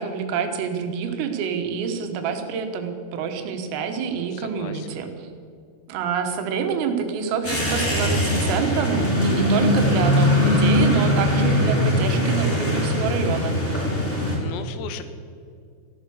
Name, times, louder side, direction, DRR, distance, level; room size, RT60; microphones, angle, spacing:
voice 1, 0.0-5.3 5.9-13.6, right 6 dB, 85° right, 6 dB, 4.0 m, -27 dB
voice 2, 4.1-4.9 14.4-15.0, left 9 dB, 85° left, 10 dB, 3.7 m, -37 dB
sound 1, 7.4-14.4, left 1 dB, 15° left, 2.6 m, -21 dB
15.0 x 11.5 x 7.0 m, 2.3 s
omnidirectional pair, 5.9 m